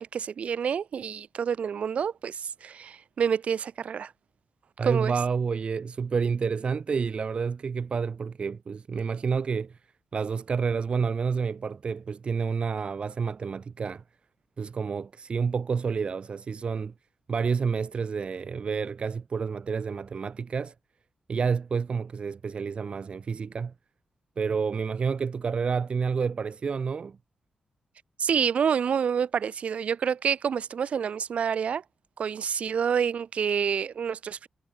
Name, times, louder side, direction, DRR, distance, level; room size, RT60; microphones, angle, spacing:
voice 1, 0.0-4.1 4.8-5.1 28.2-31.8 32.2-34.5, right 7 dB, 70° right, 7.0 m, -28 dB
voice 2, 4.8-9.8 10.1-14.0 14.6-16.9 17.3-20.7 21.3-23.7 24.4-27.2, right 5 dB, 50° right, 4.5 m, -29 dB
cardioid pair, 100°, 2 cm